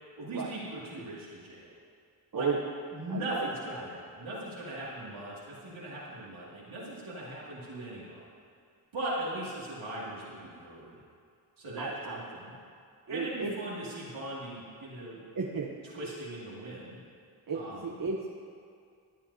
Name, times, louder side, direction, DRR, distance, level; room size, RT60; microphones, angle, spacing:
voice 1, 0.2-1.7 2.3-2.5 2.9-8.2 8.9-11.0 11.6-12.5 13.1-15.2 15.9-17.0 17.5-17.9, right 1 dB, 80° right, -8 dB, 2.5 m, -39 dB
voice 2, 3.1-3.9 11.8-12.2 13.1-13.5 15.3-15.7 17.5-18.3, right 5 dB, 45° right, -1 dB, 1.0 m, -34 dB
21.5 x 7.4 x 2.8 m, 2.3 s
cardioid pair, 45°, 47 cm